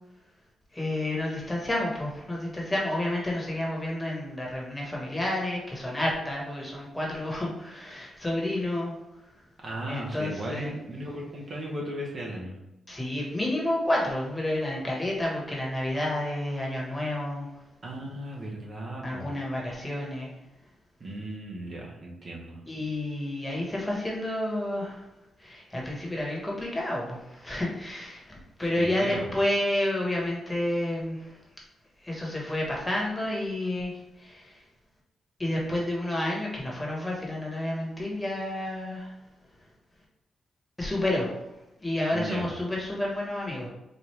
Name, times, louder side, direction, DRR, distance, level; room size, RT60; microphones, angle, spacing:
voice 1, 0.7-8.9 9.9-10.7 12.9-17.5 19.0-20.3 22.6-25.0 25.4-31.4 32.0-34.6 35.4-39.1 40.8-41.3 41.8-43.7, left 1 dB, 15° left, -3 dB, 1.2 m, -30 dB
voice 2, 9.6-12.6 17.8-19.3 21.0-22.6 28.6-29.3 42.1-42.6, right 1 dB, 45° right, -2 dB, 0.9 m, -36 dB
4.4 x 2.3 x 3.2 m, 0.94 s
cardioid pair, 90°, 0 cm